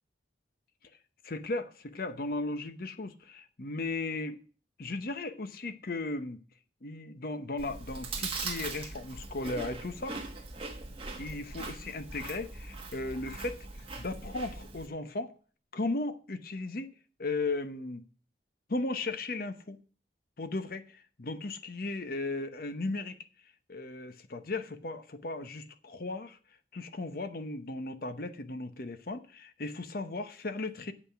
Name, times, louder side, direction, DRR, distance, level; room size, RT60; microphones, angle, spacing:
voice 1, 1.2-4.4 4.8-6.4 6.8-10.1 11.2-13.7 14.0-15.3 15.7-16.9 17.2-18.0 18.7-19.8 20.4-23.2 23.7-26.4 26.7-30.9, left 2 dB, 50° left, 0.8 m, -36 dB
Chewing mastication, 7.6-14.9, right 3 dB, 30° right, 1.5 m, -41 dB
8.2 x 5.7 x 6.9 m
head